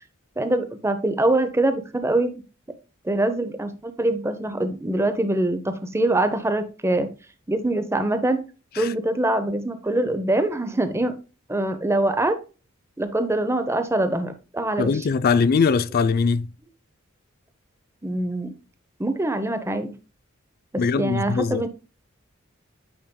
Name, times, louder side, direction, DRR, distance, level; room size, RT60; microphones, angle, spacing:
voice 1, 0.4-2.3 3.0-7.1 7.5-8.4 8.8-11.1 11.5-12.4 13.0-14.9 18.0-18.5 19.0-19.9 20.7-21.7, right 1 dB, 15° right, 0.6 m, -24 dB
voice 2, 14.8-16.5 20.8-21.6, left 5 dB, 45° left, 0.4 m, -21 dB
8.7 x 5.1 x 2.2 m
head